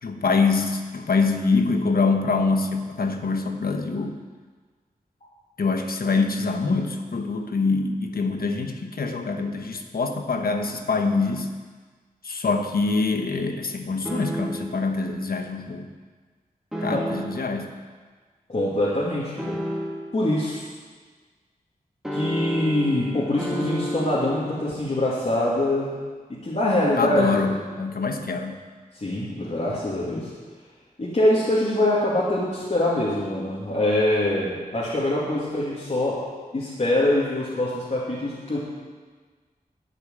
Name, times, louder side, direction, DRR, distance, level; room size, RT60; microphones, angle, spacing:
voice 1, 0.0-4.2 5.6-11.5 12.2-15.9 16.8-17.7 27.0-28.6, left 4 dB, 80° left, 5 dB, 1.2 m, -24 dB
sound 1, 14.0-14.8 16.7-17.5 19.4-20.2 22.0-24.7, equal, ahead, 2.0 m, -30 dB
voice 2, 18.5-19.6 20.1-20.6 22.1-26.0 26.4-27.5 28.9-30.3 31.0-36.2 36.5-38.6, left 1 dB, 50° left, -8 dB, 2.5 m, -24 dB
11.5 x 6.7 x 9.4 m, 1.5 s
wide cardioid pair, 90°, 15 cm